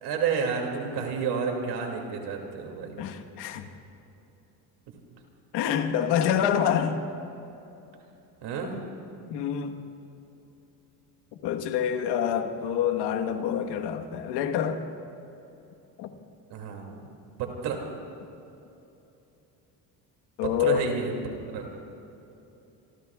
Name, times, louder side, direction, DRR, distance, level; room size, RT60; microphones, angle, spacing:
voice 1, 0.0-2.9 8.4-8.7 16.5-17.0 17.4-17.8 20.4-21.1 21.5-21.7, right 6 dB, 75° right, 1 dB, 2.5 m, -30 dB
voice 2, 3.0-3.7 5.5-7.0 9.3-9.8 11.4-14.8 16.0-16.1 20.4-20.9, left 8 dB, 80° left, 6 dB, 1.4 m, -27 dB
25.5 x 24.0 x 2.4 m, 3.0 s
cardioid pair, 120°, 41 cm